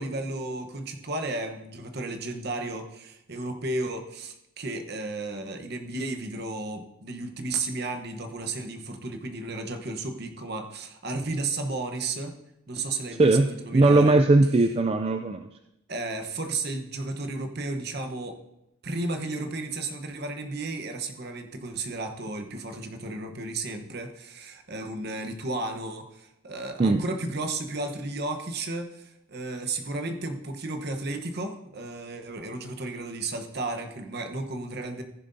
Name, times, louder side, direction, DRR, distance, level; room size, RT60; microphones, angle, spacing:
voice 1, 0.0-12.4 12.7-14.2 15.9-18.4 18.8-35.0, right 2 dB, 50° right, 5 dB, 1.0 m, -33 dB
voice 2, 13.2-15.5 26.8-27.0, right 2 dB, 30° right, 6 dB, 0.3 m, -20 dB
14.5 x 10.5 x 2.7 m, 0.88 s
head